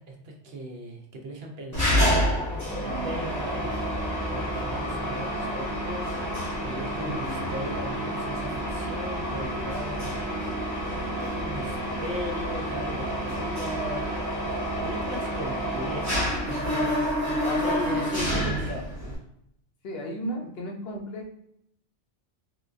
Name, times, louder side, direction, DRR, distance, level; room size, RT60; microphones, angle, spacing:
voice 1, 0.0-2.4 2.8-6.3 6.6-10.6 11.2-19.2, right 1 dB, 65° right, 1 dB, 0.8 m, -38 dB
Mechanisms, 1.7-19.2, equal, 15° left, 0.8 m, -29 dB
voice 2, 7.0-7.5 17.4-18.1 19.8-21.3, equal, 65° left, 0 dB, 0.9 m, -35 dB
3.8 x 2.1 x 2.5 m, 0.75 s
omnidirectional pair, 1.2 m